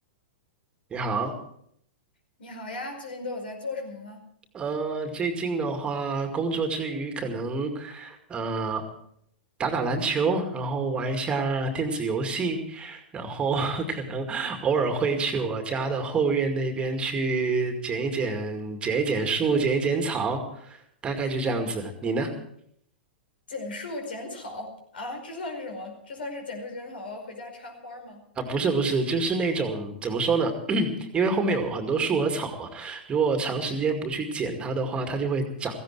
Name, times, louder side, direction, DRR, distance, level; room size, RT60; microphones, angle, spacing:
voice 1, 0.9-1.3 4.5-8.8 9.6-22.3 28.4-35.8, right 4 dB, 20° right, 5 dB, 2.2 m, -27 dB
voice 2, 2.4-4.2 23.5-28.2, left 2 dB, 70° left, 4 dB, 5.0 m, -37 dB
17.0 x 15.5 x 4.8 m, 0.70 s
figure-of-eight pair, 105°, 5 cm